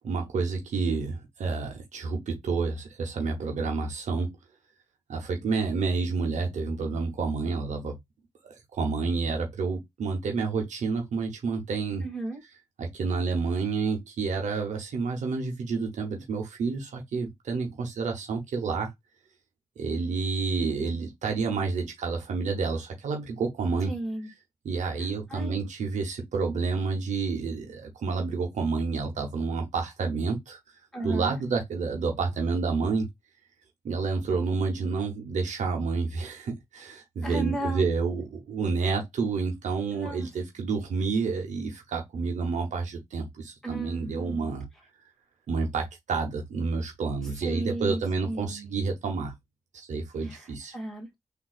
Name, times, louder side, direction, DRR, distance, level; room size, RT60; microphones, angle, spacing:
voice 1, 0.0-4.4 5.1-8.0 8.4-12.1 12.8-18.9 19.8-23.9 24.6-30.6 31.0-33.1 33.8-44.6 45.5-49.3 49.7-50.8, right 4 dB, 85° right, 0.8 m, -29 dB
voice 2, 12.0-12.4 23.9-24.3 25.3-25.6 30.9-31.4 37.2-37.8 39.9-40.3 43.6-44.5 47.4-48.7 50.2-50.5 50.7-51.1, right 2 dB, 5° left, 1.9 m, -35 dB
3.7 x 2.6 x 2.3 m
cardioid pair, 50°, 12 cm